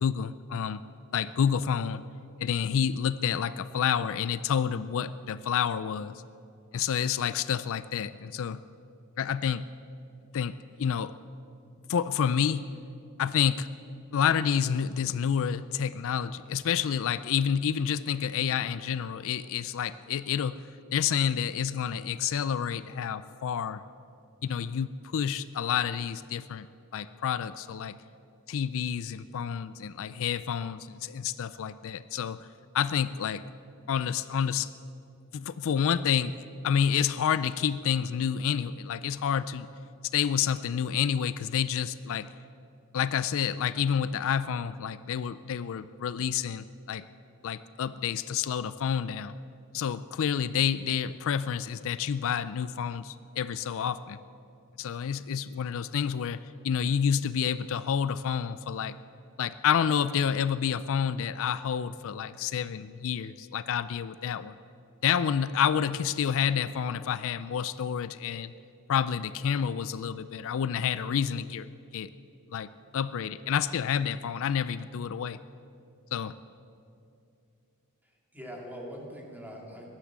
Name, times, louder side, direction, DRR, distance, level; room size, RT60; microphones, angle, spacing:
voice 1, 0.0-0.8 1.1-2.0 2.4-6.1 6.7-8.6 9.2-9.6 10.3-11.1 11.9-12.7 13.2-13.7 14.1-20.5 20.9-23.8 24.4-26.7 26.9-28.0 28.5-32.4 32.7-33.4 33.9-34.7 35.3-36.3 36.6-39.7 40.1-42.3 42.9-47.0 47.4-49.3 49.7-54.2 54.8-59.0 59.4-64.5 65.0-68.5 68.9-71.7 71.9-72.1 72.5-72.7 72.9-75.4 76.1-76.3, left 8 dB, 65° left, 15 dB, 0.4 m, -29 dB
voice 2, 78.0-79.9, equal, 10° right, -1 dB, 2.6 m, -43 dB
16.0 x 11.5 x 7.4 m, 2.6 s
head